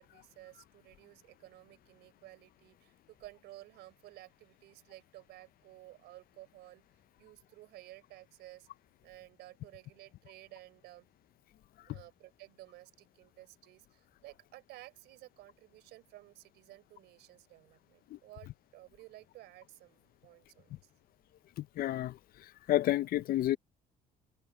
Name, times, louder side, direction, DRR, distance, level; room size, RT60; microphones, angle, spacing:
voice 1, 0.0-6.8 7.2-8.7 9.0-11.1 11.8-20.9, right 17 dB, 85° right, 4.0 m, -54 dB
voice 2, 21.8-22.1 22.7-23.6, left 14 dB, 60° left, 0.5 m, -29 dB
cardioid pair, 110°, 17 cm